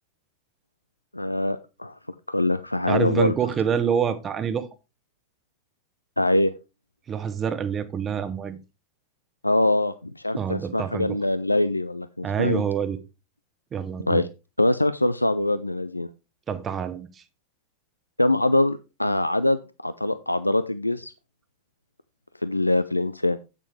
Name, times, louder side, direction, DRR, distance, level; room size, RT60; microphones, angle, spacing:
voice 1, 1.1-2.0 2.3-3.3 6.2-6.5 9.4-12.6 14.1-14.3 14.6-16.1 18.2-21.1 22.4-23.4, left 1 dB, 85° left, 0.4 m, -23 dB
voice 2, 2.9-4.7 7.1-8.6 10.4-11.2 12.2-13.0 13.7-14.2 16.5-17.1, right 7 dB, 25° right, 1.0 m, -26 dB
8.9 x 8.5 x 3.2 m
figure-of-eight pair, 90°, 0 cm